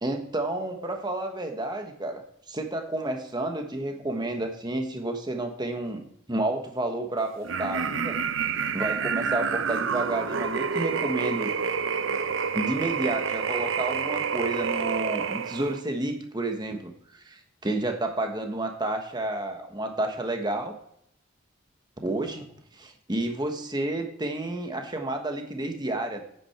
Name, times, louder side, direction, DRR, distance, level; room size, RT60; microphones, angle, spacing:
voice 1, 0.0-2.2 2.5-8.2 8.7-11.5 12.5-16.9 17.2-20.7 22.0-22.5 22.7-26.2, right 2 dB, 20° right, 4 dB, 1.2 m, -30 dB
sound 1, 7.4-15.8, right 6 dB, 65° right, 0.6 m, -28 dB
9.4 x 8.7 x 4.4 m, 0.71 s
head